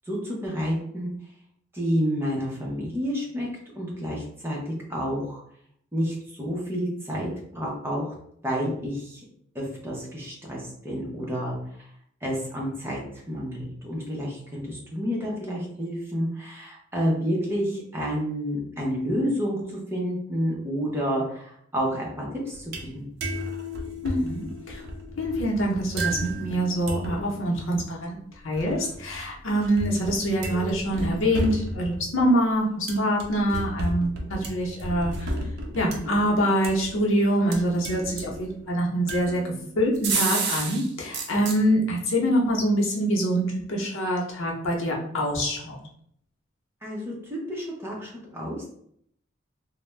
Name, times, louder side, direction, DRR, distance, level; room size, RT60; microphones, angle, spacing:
voice 1, 0.1-1.1 1.7-3.5 3.7-5.4 5.9-8.0 8.4-9.2 9.5-11.6 12.2-13.0 13.3-19.6 19.9-23.1 46.8-48.7, equal, 10° right, -4 dB, 0.7 m, -29 dB
sound 1, 22.5-23.0 23.2-27.5 28.5-32.3 32.9-37.2 37.5-38.6 39.1-40.9 41.1-41.6, right 2 dB, 55° right, 0.5 m, -33 dB
voice 2, 24.0-24.8 25.2-28.2 28.4-35.3 35.7-45.8, equal, 90° left, -1 dB, 0.7 m, -25 dB
2.5 x 2.1 x 3.2 m, 0.67 s
head